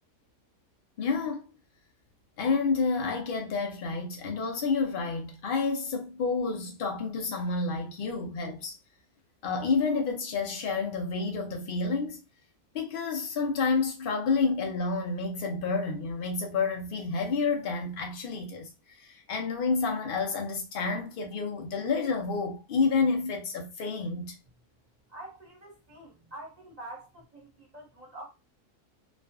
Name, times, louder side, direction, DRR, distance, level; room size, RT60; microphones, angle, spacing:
voice 1, 1.0-1.5 2.4-8.7 9.4-12.2 12.7-18.7 19.0-24.3, left 4 dB, 80° left, 0.4 m, -29 dB
voice 2, 25.1-28.3, right 1 dB, 35° right, 0.8 m, -46 dB
2.4 x 2.4 x 2.3 m
omnidirectional pair, 1.6 m